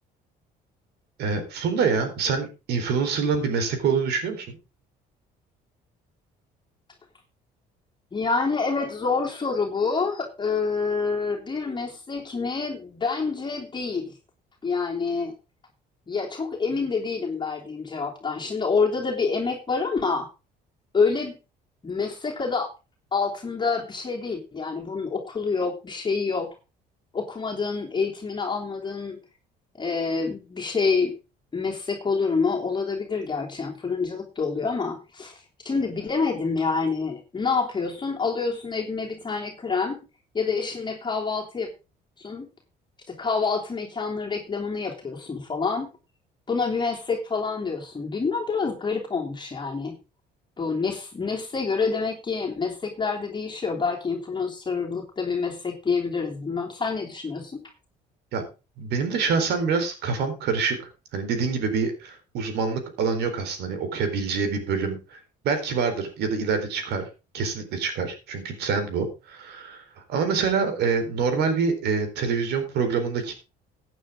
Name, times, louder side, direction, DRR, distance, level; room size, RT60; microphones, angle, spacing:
voice 1, 1.2-4.6 58.3-58.4 58.8-60.8 61.1-65.2 65.4-67.1 67.3-73.3, right 5 dB, 75° right, 7 dB, 4.1 m, -26 dB
voice 2, 8.1-14.1 14.6-15.3 16.1-20.3 20.9-21.4 21.8-22.7 23.1-26.5 27.1-29.2 29.8-31.1 31.5-40.0 40.3-41.7 42.2-42.5 43.1-45.9 46.5-50.0 50.6-57.6, left 4 dB, 25° left, 0 dB, 3.1 m, -27 dB
15.0 x 9.2 x 3.7 m, 0.29 s
cardioid pair, 110°, 17 cm